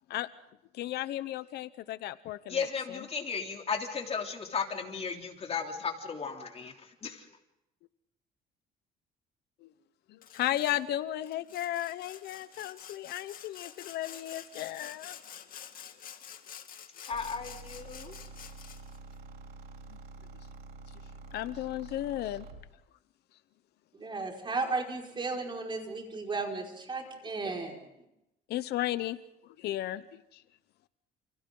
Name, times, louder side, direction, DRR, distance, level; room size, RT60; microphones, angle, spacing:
voice 1, 0.7-2.7 9.6-9.7 10.1-15.2 21.3-22.4 28.5-29.2 29.6-30.4, left 13 dB, 75° left, 14 dB, 0.9 m, -34 dB
voice 2, 2.5-7.2 17.0-18.2, left 5 dB, 35° left, 3 dB, 3.2 m, -35 dB
Sawing, 10.2-10.8 11.3-19.0, left 9 dB, 55° left, 2.5 m, -48 dB
sound 1, 17.1-22.7, right 2 dB, 65° right, 3.2 m, -48 dB
voice 3, 23.9-27.8, right 3 dB, 30° right, 1 dB, 5.4 m, -34 dB
29.5 x 29.5 x 3.9 m, 0.87 s
cardioid pair, 110°, 17 cm